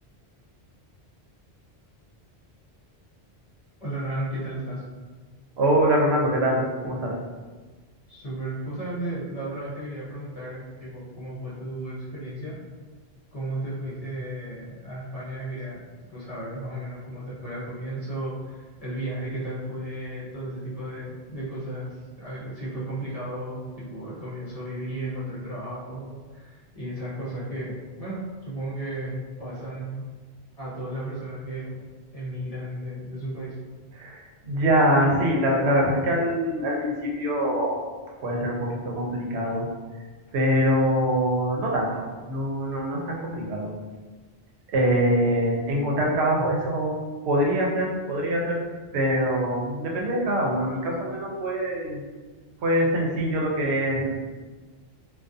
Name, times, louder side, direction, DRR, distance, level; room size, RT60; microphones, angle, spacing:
voice 1, 3.8-4.8 8.1-12.6 13.3-15.8 16.1-30.0 30.6-31.8 32.1-33.6, right 1 dB, 40° left, -8 dB, 0.6 m, -34 dB
voice 2, 5.6-7.1 33.9-37.8 38.2-39.7 40.3-43.7 44.7-46.9 47.2-48.6 48.9-52.0 52.6-54.1, equal, 80° right, -1 dB, 0.8 m, -24 dB
2.3 x 2.2 x 2.5 m, 1.4 s
omnidirectional pair, 1.1 m